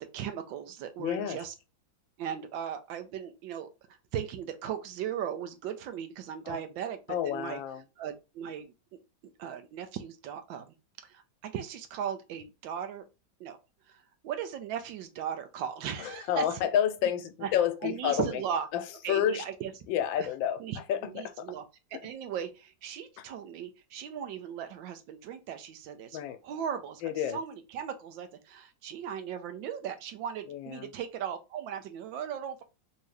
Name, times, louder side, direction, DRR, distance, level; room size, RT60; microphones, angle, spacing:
voice 1, 0.0-1.5 2.2-7.6 8.0-8.7 9.4-10.7 11.0-13.0 13.4-13.6 13.9-16.4 17.4-17.5 17.8-18.7 19.0-19.7 20.2-20.3 20.6-21.6 22.0-27.0 27.3-32.6, right 8 dB, 90° right, 1.4 m, -37 dB
voice 2, 1.0-1.4 6.5-6.6 7.1-7.8 16.0-18.4 18.7-18.8 19.1-19.4 19.9-20.6 20.9-21.5 21.9-22.0 23.2-23.3 26.1-26.4 27.0-27.4 30.5-30.9, left 10 dB, 90° left, 1.3 m, -30 dB
3.6 x 2.8 x 3.2 m
omnidirectional pair, 2.0 m